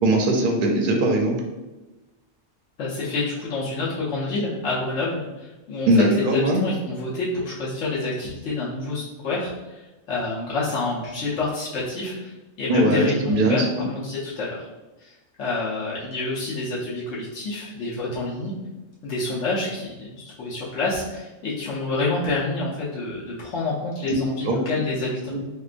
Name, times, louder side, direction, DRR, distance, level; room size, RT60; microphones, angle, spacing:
voice 1, 0.0-1.4 5.9-6.6 12.7-13.7 24.4-24.6 25.3-25.4, right 1 dB, 55° right, 2 dB, 0.6 m, -20 dB
voice 2, 2.8-9.8 10.1-14.7 15.0-15.1 15.4-18.5 19.0-25.4, left 3 dB, 75° left, -7 dB, 1.1 m, -28 dB
4.7 x 2.2 x 2.4 m, 1.1 s
omnidirectional pair, 1.3 m